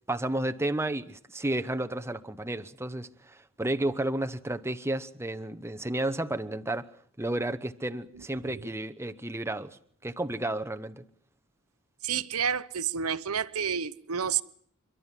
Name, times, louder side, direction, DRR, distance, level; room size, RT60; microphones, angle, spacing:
voice 1, 0.1-6.9 7.2-11.0, right 1 dB, 10° right, 0.9 m, -32 dB
voice 2, 8.1-8.7 12.0-14.4, right 7 dB, 70° right, 1.0 m, -30 dB
29.0 x 12.5 x 9.8 m
head